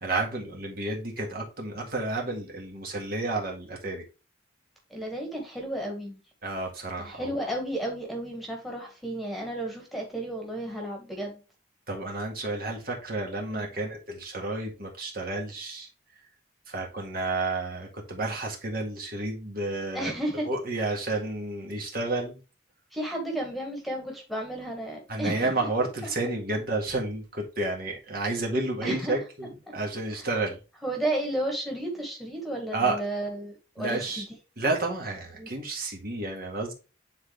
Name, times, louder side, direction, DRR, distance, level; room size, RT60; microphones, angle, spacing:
voice 1, 0.0-4.0 6.4-7.3 11.9-15.9 16.7-20.1 20.5-22.4 25.1-30.6 32.7-33.0 33.8-34.2 34.6-36.7, right 2 dB, 50° right, 1.9 m, -31 dB
voice 2, 4.9-6.2 7.1-11.4 13.4-13.7 19.9-20.5 22.9-25.5 28.8-29.2 30.1-30.3 30.8-34.3 35.4-35.5, right 1 dB, ahead, 1.7 m, -33 dB
9.5 x 4.0 x 3.4 m
head